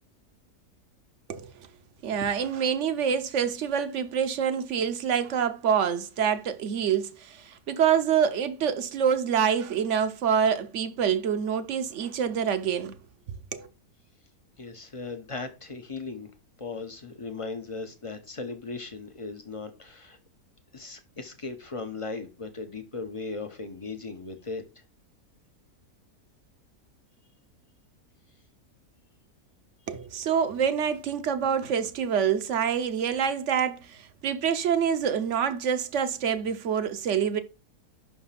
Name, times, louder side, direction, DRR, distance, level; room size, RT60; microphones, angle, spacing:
voice 1, 1.3-1.7 2.0-13.0 13.5-13.7 29.9-37.4, right 7 dB, 60° right, 0.9 m, -26 dB
voice 2, 14.6-16.3 16.6-20.2 20.7-24.6, left 4 dB, 40° left, 0.4 m, -37 dB
5.8 x 3.4 x 5.6 m
omnidirectional pair, 1.6 m